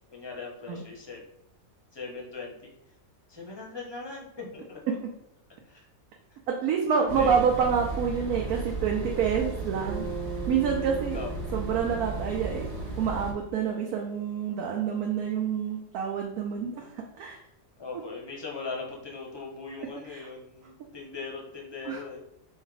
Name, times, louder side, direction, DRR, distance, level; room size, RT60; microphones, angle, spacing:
voice 1, 0.1-1.2 1.9-2.5 3.3-5.0 5.7-5.8 7.1-7.4 11.1-11.3 17.8-22.2, left 4 dB, 25° left, -1 dB, 0.6 m, -39 dB
voice 2, 6.5-10.1 10.5-11.2 11.5-12.7 13.0-17.4 20.1-20.3 21.8-22.0, right 7 dB, 85° right, 0 dB, 1.1 m, -27 dB
sound 1, 7.1-13.3, right 2 dB, 25° right, 1.2 m, -35 dB
Bass guitar, 9.9-14.2, right 6 dB, 60° right, 1.0 m, -42 dB
4.4 x 2.7 x 3.8 m, 0.79 s
omnidirectional pair, 1.5 m